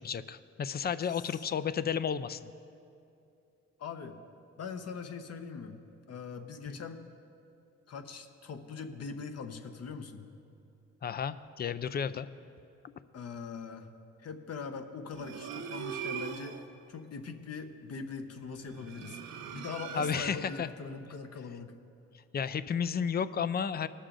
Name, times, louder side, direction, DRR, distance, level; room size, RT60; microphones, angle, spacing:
voice 1, 0.0-2.5 6.7-6.8 11.0-12.3 19.9-20.7 22.3-23.9, left 7 dB, 35° left, 15 dB, 0.5 m, -32 dB
voice 2, 1.1-1.4 3.8-4.2 4.6-5.8 6.1-7.1 7.9-10.3 13.1-13.9 14.2-16.6 16.9-19.2 19.5-21.7, left 5 dB, 55° left, 7 dB, 1.0 m, -42 dB
sound 1, 15.1-16.7 18.6-20.6, right 7 dB, 70° right, 1.0 m, -41 dB
19.0 x 6.5 x 3.8 m, 2.6 s
supercardioid pair, 65°, 29 cm